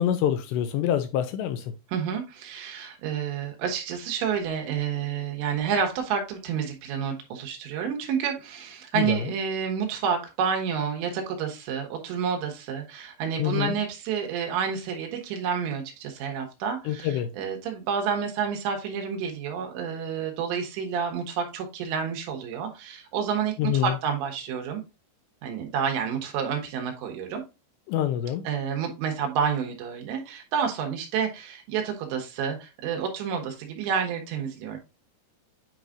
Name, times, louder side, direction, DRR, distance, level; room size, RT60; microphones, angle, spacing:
voice 1, 0.0-1.7 8.9-9.2 13.4-13.7 16.9-17.3 23.6-23.9 27.9-28.5, left 11 dB, 80° left, 2.6 m, -26 dB
voice 2, 1.9-24.8 25.4-27.4 28.4-34.8, right 7 dB, 75° right, 3.4 m, -29 dB
9.2 x 4.7 x 2.4 m
omnidirectional pair, 5.3 m